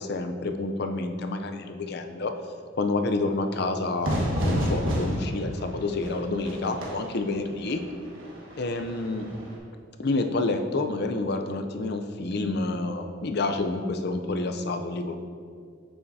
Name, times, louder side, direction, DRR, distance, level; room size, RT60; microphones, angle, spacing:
voice 1, 0.0-2.3 2.8-7.8 8.6-9.3 10.0-15.2, left 2 dB, 50° left, 6 dB, 0.5 m, -29 dB
Fire / Fireworks, 4.0-9.6, equal, 75° right, 1.3 m, -30 dB
8.6 x 7.0 x 2.7 m, 2.2 s
head